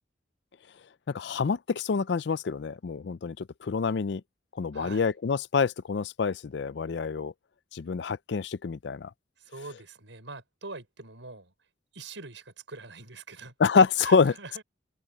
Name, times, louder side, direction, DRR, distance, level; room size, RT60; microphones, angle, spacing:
voice 1, 1.1-4.2 4.6-7.3 7.7-9.1 13.6-14.3, left 5 dB, 65° left, 0.4 m, -26 dB
voice 2, 4.7-5.1 9.4-11.5 11.9-13.5 14.0-14.6, right 3 dB, 90° right, 5.9 m, -44 dB
head